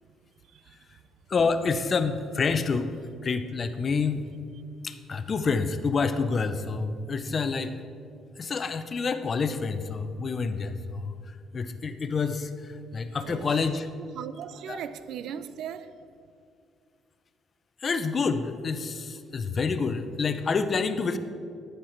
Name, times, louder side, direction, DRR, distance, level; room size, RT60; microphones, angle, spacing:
voice 1, 0.4-1.0 13.2-13.7 14.1-16.1, right 8 dB, 75° right, 0.4 m, -39 dB
voice 2, 1.3-2.9 3.2-4.3 4.8-7.7 8.4-11.1 11.5-13.9 14.7-14.8 17.8-21.2, left 4 dB, 40° left, 0.6 m, -28 dB
9.9 x 6.7 x 4.4 m
cardioid pair, 95°, 0 cm